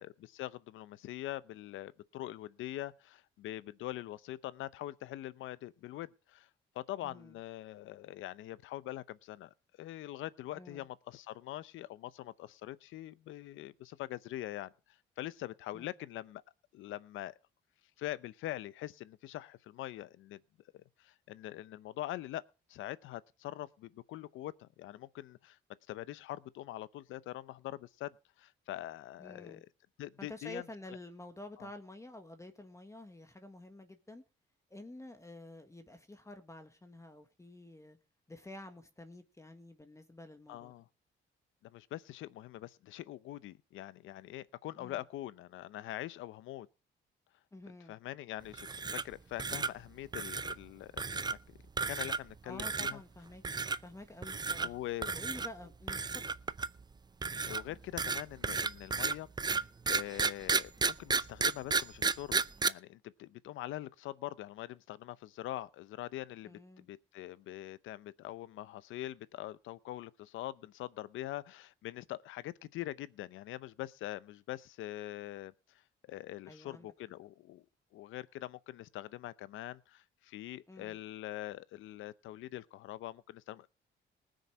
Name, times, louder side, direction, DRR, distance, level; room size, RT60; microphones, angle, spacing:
voice 1, 0.0-6.5 6.7-9.5 9.8-16.4 16.7-17.3 18.0-20.4 20.7-22.4 22.7-25.6 25.9-29.7 30.0-30.6 31.6-31.7 40.5-40.9 41.6-46.7 47.9-51.6 51.9-53.0 54.6-55.1 57.4-75.8 76.1-77.6 77.9-83.7, left 14 dB, 85° left, 0.7 m, -43 dB
voice 2, 7.0-7.4 10.5-10.8 15.7-15.9 29.2-29.6 30.2-34.2 34.7-38.0 38.3-40.7 44.8-45.0 47.5-48.0 52.4-53.4 53.8-54.7 55.0-56.3 66.5-66.9 76.4-76.9 80.7-81.0, left 1 dB, 15° left, 1.6 m, -50 dB
sound 1, 48.5-49.1 49.4-49.7 50.1-50.6 51.0-51.4 51.8-52.3 52.6-52.9 53.4-53.8 54.2-54.7 55.0-55.5 55.9-56.8 57.2-62.7, right 4 dB, 20° right, 0.5 m, -32 dB
19.5 x 6.6 x 5.9 m
cardioid pair, 90°, 20 cm